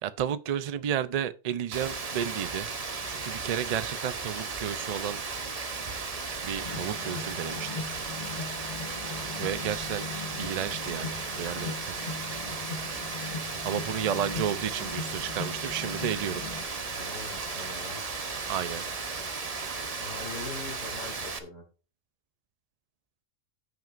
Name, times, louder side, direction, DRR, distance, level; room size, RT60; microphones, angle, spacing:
voice 1, 0.0-2.7 3.1-5.2 6.4-7.8 9.4-10.1 10.4-11.9 13.6-16.4 18.5-18.8, right 9 dB, 80° right, 0.3 m, -32 dB
Rain, 1.7-21.4, right 4 dB, 35° right, 0.8 m, -35 dB
sound 1, 6.6-16.6, left 4 dB, 40° left, 1.6 m, -39 dB
voice 2, 16.8-18.0 20.0-21.6, left 3 dB, 70° left, 3.3 m, -42 dB
14.0 x 6.1 x 2.5 m
omnidirectional pair, 1.3 m